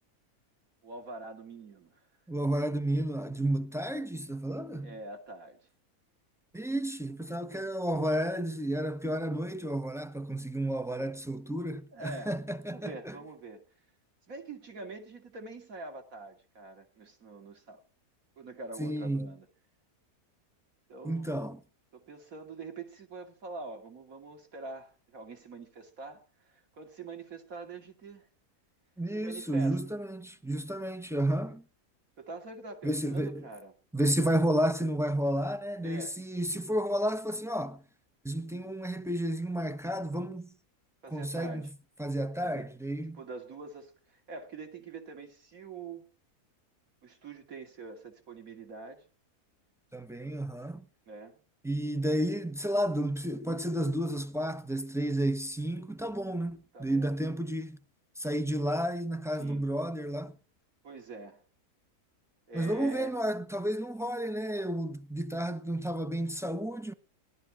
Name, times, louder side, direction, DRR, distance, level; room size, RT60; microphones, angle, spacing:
voice 1, 0.8-2.0 4.8-5.6 11.9-12.3 12.7-13.6 14.3-17.8 18.4-19.5 20.9-21.5 21.9-28.3 29.1-29.8 32.2-33.7 35.8-36.2 41.0-41.7 42.4-42.7 43.1-46.1 47.0-49.1 51.1-51.4 56.7-57.4 59.4-59.6 60.8-61.4 62.5-63.2, right 3 dB, 65° right, 3.0 m, -45 dB
voice 2, 2.3-4.9 6.5-13.2 18.8-19.3 21.0-21.6 29.0-31.6 32.8-33.4 33.9-37.8 38.2-40.5 41.1-41.7 42.0-43.2 49.9-50.9 51.6-57.8 58.2-60.3 62.5-66.9, right 1 dB, 5° right, 0.4 m, -31 dB
18.0 x 12.0 x 6.1 m
omnidirectional pair, 1.6 m